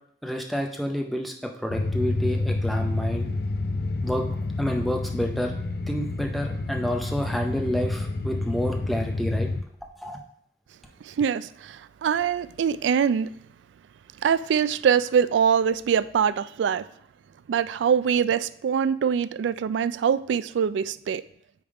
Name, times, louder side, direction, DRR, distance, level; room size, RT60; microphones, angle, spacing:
voice 1, 0.2-1.3 1.6-3.3 4.0-4.2 4.6-5.5 5.9-9.5 10.0-10.2, equal, ahead, 1 dB, 0.6 m, -29 dB
sound 1, 1.7-9.6, left 2 dB, 55° left, 0.4 m, -29 dB
voice 2, 11.0-13.3 14.2-16.8 17.5-21.2, right 7 dB, 80° right, 16 dB, 0.3 m, -23 dB
8.5 x 3.6 x 4.8 m, 0.70 s
head